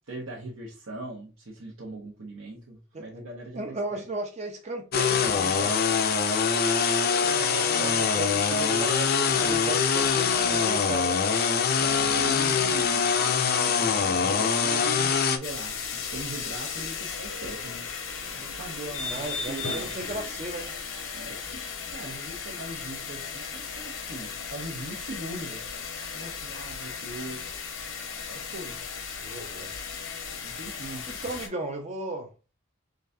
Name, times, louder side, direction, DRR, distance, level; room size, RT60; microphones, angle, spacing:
voice 1, 0.1-4.0 7.2-8.1 11.8-17.9 18.2-19.9 21.1-21.6 21.9-25.6 26.1-27.6 28.3-28.8 30.4-31.1, right 2 dB, 80° right, 0.9 m, -40 dB
voice 2, 3.6-5.8 7.7-11.3 19.0-20.8 29.2-29.7 31.1-32.3, right 2 dB, 35° right, 0.5 m, -35 dB
sound 1, 4.9-15.4, left 6 dB, 50° left, 0.5 m, -24 dB
sound 2, 15.4-31.5, left 5 dB, 75° left, 0.9 m, -36 dB
3.9 x 3.4 x 2.6 m
head